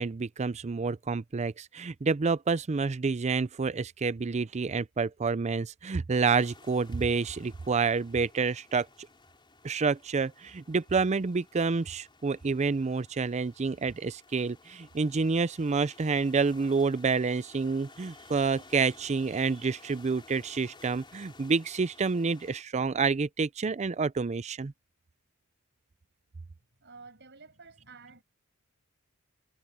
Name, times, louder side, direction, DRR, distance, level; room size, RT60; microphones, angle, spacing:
voice 1, 0.0-8.9 9.6-24.7, right 4 dB, 30° right, 0.5 m, -28 dB
sound 1, 6.1-22.6, left 3 dB, 25° left, 4.8 m, -55 dB
voice 2, 26.6-28.2, right 4 dB, 55° right, 7.8 m, -51 dB
head